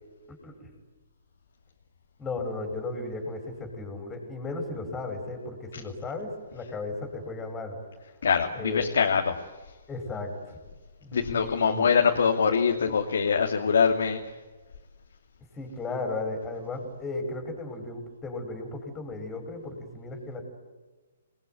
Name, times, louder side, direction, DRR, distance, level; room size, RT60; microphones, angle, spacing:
voice 1, 2.2-7.8 8.5-8.9 9.9-10.6 11.0-11.9 15.5-20.4, left 2 dB, 15° left, 3 dB, 6.1 m, -35 dB
voice 2, 8.2-9.4 11.1-14.3, left 6 dB, 65° left, 2 dB, 2.7 m, -24 dB
28.0 x 20.5 x 9.7 m, 1.3 s
figure-of-eight pair, 130°, 0 cm